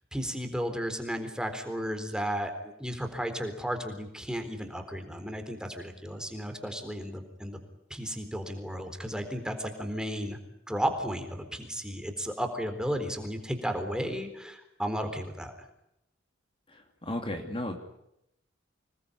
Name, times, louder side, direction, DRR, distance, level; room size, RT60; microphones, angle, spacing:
voice 1, 0.1-2.5 2.8-7.6 7.9-10.4 10.7-15.5, equal, 5° right, 7 dB, 3.9 m, -34 dB
voice 2, 16.7-17.8, left 1 dB, 30° left, 4 dB, 2.7 m, -35 dB
27.0 x 20.5 x 9.9 m, 0.82 s
head